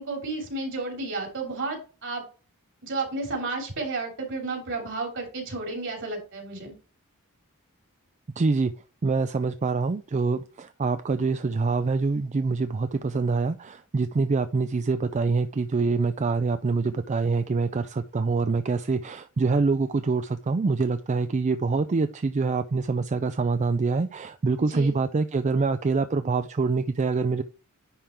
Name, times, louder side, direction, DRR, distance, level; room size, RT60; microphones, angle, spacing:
voice 1, 0.0-2.2 2.8-6.7 24.6-25.0, right 3 dB, 60° right, 2 dB, 3.1 m, -32 dB
voice 2, 8.4-8.7 9.0-27.4, right 4 dB, 35° right, 11 dB, 0.4 m, -25 dB
10.0 x 3.7 x 4.4 m, 0.35 s
head